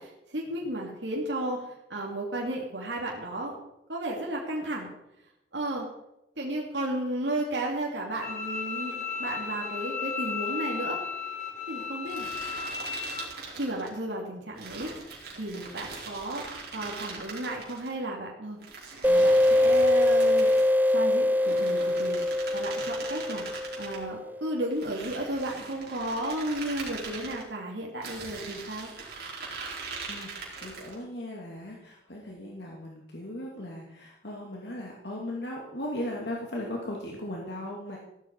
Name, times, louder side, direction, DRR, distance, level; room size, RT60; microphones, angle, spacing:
voice 1, 0.0-3.6 3.9-4.9 5.5-5.9 6.4-11.0 11.7-12.3 13.5-14.9 15.4-16.5 16.7-18.6 19.0-20.5 20.9-22.2 22.5-23.5 23.8-28.9, right 1 dB, 75° right, -2 dB, 2.7 m, -33 dB
Bowed string instrument, 8.2-13.2, left 5 dB, 40° left, 2.3 m, -34 dB
sound 1, 12.1-14.0 14.6-17.9 18.6-20.7 21.3-24.0 24.7-27.4 28.0-31.0, right 4 dB, 60° right, 4.4 m, -41 dB
sound 2, 19.0-24.4, left 1 dB, 10° right, 0.7 m, -23 dB
voice 2, 30.1-38.0, left 1 dB, 65° left, -2 dB, 2.6 m, -37 dB
15.5 x 12.5 x 4.7 m, 0.85 s
head